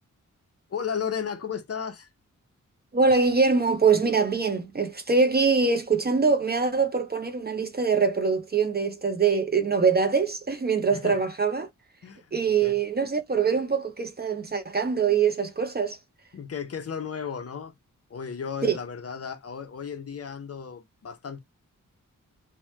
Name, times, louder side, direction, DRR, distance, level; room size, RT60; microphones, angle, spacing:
voice 1, 0.7-2.1 10.9-11.2 12.0-12.3 12.6-12.8 16.3-17.7 18.1-21.4, left 7 dB, 50° left, 0.6 m, -34 dB
voice 2, 2.9-11.7 12.3-16.0 18.6-18.8, right 5 dB, 30° right, 0.5 m, -23 dB
2.9 x 2.1 x 3.0 m
wide cardioid pair, 135°, 31 cm